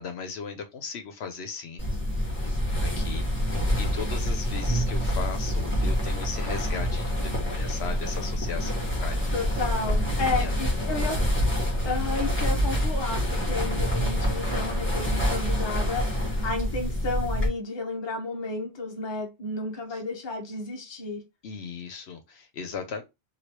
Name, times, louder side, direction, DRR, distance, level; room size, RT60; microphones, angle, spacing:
voice 1, 0.0-1.9 2.1-2.5 2.8-9.3 10.2-11.1 19.9-20.0 21.4-23.0, left 5 dB, 70° left, 0.9 m, -38 dB
sound 1, 1.8-17.5, equal, 10° left, 1.3 m, -27 dB
voice 2, 9.3-11.2 11.8-21.2, left 3 dB, 25° left, 0.7 m, -32 dB
3.1 x 2.7 x 3.0 m
omnidirectional pair, 1.1 m